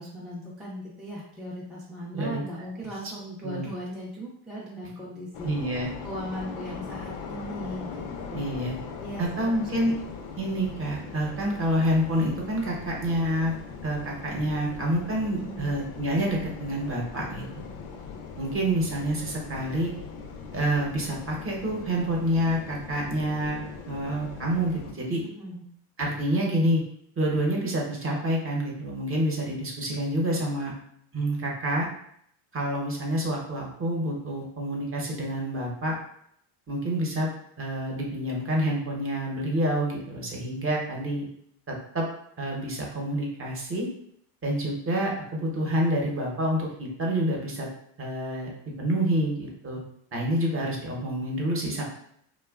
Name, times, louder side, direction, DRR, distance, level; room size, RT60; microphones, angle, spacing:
voice 1, 0.0-5.5 6.0-8.5 9.0-9.5 9.8-9.9 15.4-15.7 25.2-25.6, equal, ahead, -6 dB, 0.4 m, -38 dB
sound 1, 5.3-24.9, left 5 dB, 75° left, 0.6 m, -40 dB
voice 2, 5.4-5.9 8.3-8.7 9.2-9.9 10.4-13.5 13.8-17.4 18.4-19.9 20.5-25.2 26.0-26.8 27.2-30.7 31.1-31.9 32.5-35.9 36.7-37.3 37.6-41.2 41.7-42.1 42.4-43.9 44.4-47.7 48.0-48.5 48.8-49.8 50.1-51.8, right 1 dB, 30° right, -2 dB, 0.8 m, -28 dB
2.8 x 2.2 x 2.3 m, 0.69 s
supercardioid pair, 100°, 46 cm